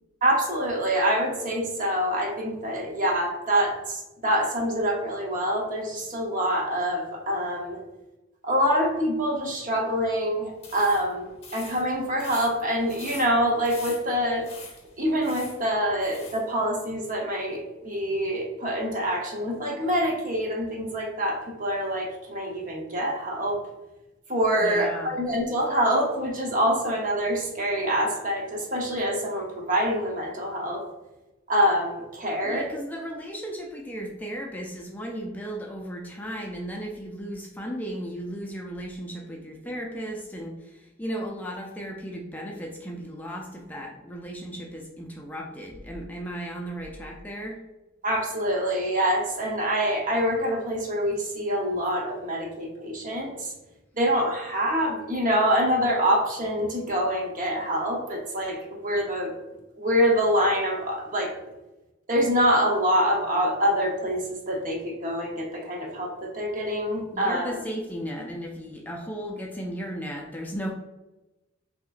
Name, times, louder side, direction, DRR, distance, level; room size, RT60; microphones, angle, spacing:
voice 1, 0.2-7.8 8.4-14.5 15.0-23.6 24.3-30.8 31.5-32.6 48.0-53.5 53.9-59.3 59.8-61.3 62.1-67.5, equal, 40° right, 0 dB, 0.9 m, -25 dB
sound 1, 10.5-16.5, left 4 dB, 30° left, 0.8 m, -45 dB
voice 2, 24.6-25.1 32.4-47.6 67.1-70.7, equal, 10° left, -1 dB, 0.4 m, -35 dB
4.9 x 2.9 x 2.5 m, 1.0 s
head